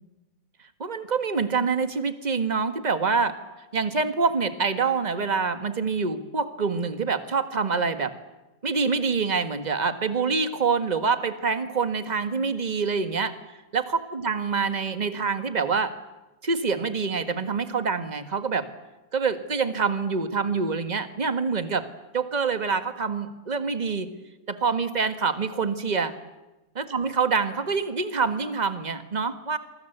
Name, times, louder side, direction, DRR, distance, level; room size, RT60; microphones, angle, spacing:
voice 1, 0.8-3.3 3.7-8.1 8.6-13.3 13.7-15.9 16.4-18.7 19.1-21.9 22.1-24.1 24.5-26.1 26.7-29.6, right 5 dB, 20° right, 10 dB, 1.4 m, -26 dB
27.5 x 24.0 x 8.1 m, 1.0 s
omnidirectional pair, 2.3 m